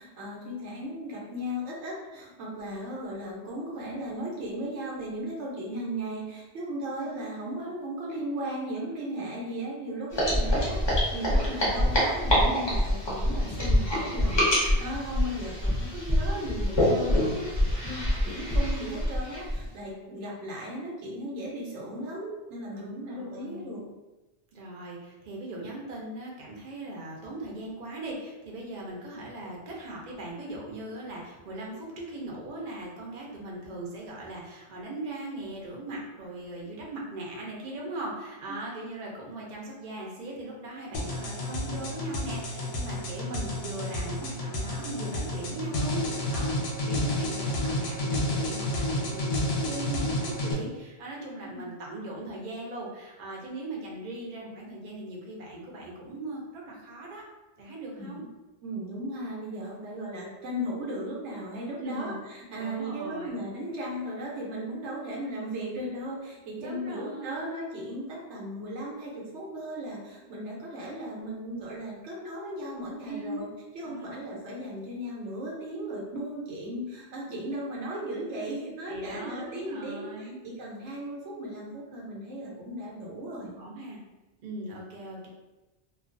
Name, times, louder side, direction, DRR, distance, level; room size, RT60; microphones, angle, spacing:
voice 1, 0.0-17.5 17.8-23.8 38.5-38.6 51.4-51.7 58.0-58.3 58.6-73.5 73.7-83.5, equal, 85° right, -4 dB, 1.0 m, -36 dB
voice 2, 7.0-7.4 22.8-23.7 24.5-46.5 46.8-57.2 57.6-58.2 61.8-62.2 62.5-63.4 66.6-67.5 73.0-73.4 73.8-74.2 78.9-80.4 83.6-84.0 84.4-85.3, right 2 dB, 50° right, -2 dB, 0.6 m, -39 dB
sound 1, 10.1-19.6, left 1 dB, 30° left, 0.5 m, -26 dB
sound 2, 40.9-50.5, left 1 dB, 65° left, 0.8 m, -30 dB
2.3 x 2.2 x 2.5 m, 1.1 s
omnidirectional pair, 1.2 m